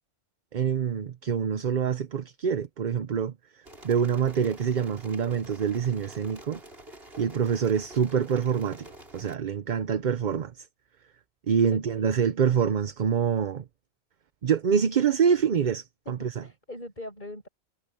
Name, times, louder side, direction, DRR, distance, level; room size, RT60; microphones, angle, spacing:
voice 1, 0.5-3.3 3.8-6.6 7.2-8.9 9.1-10.7 11.5-13.6 14.4-16.3, right 7 dB, 50° right, 0.8 m, -26 dB
sound 1, 3.6-9.4, right 1 dB, 65° right, 6.5 m, -47 dB
voice 2, 11.7-12.1 16.0-17.5, left 1 dB, 45° left, 8.1 m, -42 dB
omnidirectional pair, 1.1 m